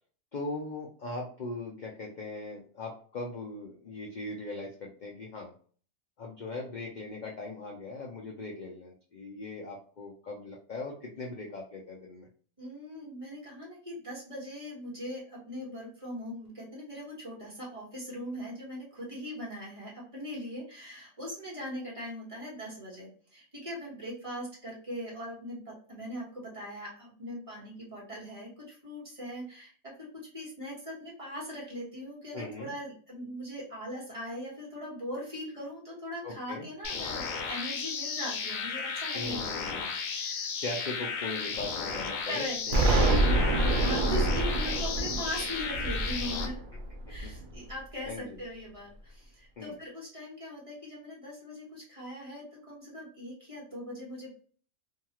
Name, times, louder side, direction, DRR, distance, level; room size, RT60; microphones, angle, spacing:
voice 1, 0.3-5.5 6.2-12.3 32.3-32.7 36.2-36.6 39.1-39.9 40.6-43.1 43.4-43.8 44.7-44.8 47.2-47.3 48.0-48.4 49.6-49.7, left 2 dB, 60° left, -2 dB, 0.5 m, -39 dB
voice 2, 12.6-40.5 42.3-42.8 43.6-46.6 47.1-54.3, equal, 25° right, -5 dB, 1.1 m, -40 dB
sound 1, 36.8-46.5, left 5 dB, 75° left, 1.0 m, -34 dB
Explosion, 42.7-47.6, right 1 dB, 75° right, 0.4 m, -27 dB
2.7 x 2.3 x 2.9 m, 0.43 s
omnidirectional pair, 1.5 m